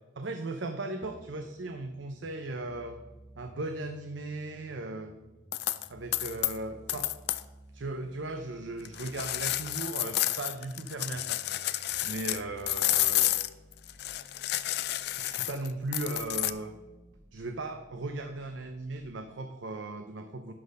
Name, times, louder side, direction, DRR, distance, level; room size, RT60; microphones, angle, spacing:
voice 1, 0.2-3.0 3.4-5.1 5.9-7.0 7.7-13.3 14.2-14.3 15.1-16.8 17.3-20.5, right 2 dB, 70° right, 6 dB, 0.6 m, -37 dB
sound 1, 1.0-19.0, right 1 dB, 15° right, 0.9 m, -56 dB
sound 2, 5.5-5.9 6.1-6.6 6.9-7.4 8.8-12.4 12.7-16.5, left 15 dB, 55° left, 0.4 m, -30 dB
10.5 x 4.1 x 6.3 m, 1.1 s
head